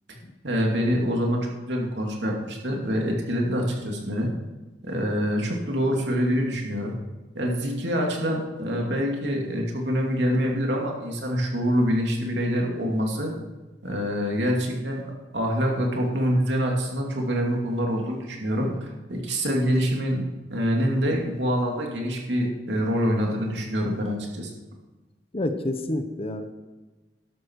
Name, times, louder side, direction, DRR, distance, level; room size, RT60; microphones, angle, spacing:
voice 1, 0.4-4.3 4.8-7.0 7.3-13.3 13.8-15.0 15.3-20.2 20.5-24.5, equal, 75° right, 0 dB, 2.7 m, -25 dB
voice 2, 25.3-26.5, left 1 dB, 35° left, 8 dB, 1.1 m, -28 dB
12.5 x 11.5 x 4.8 m, 1.2 s
head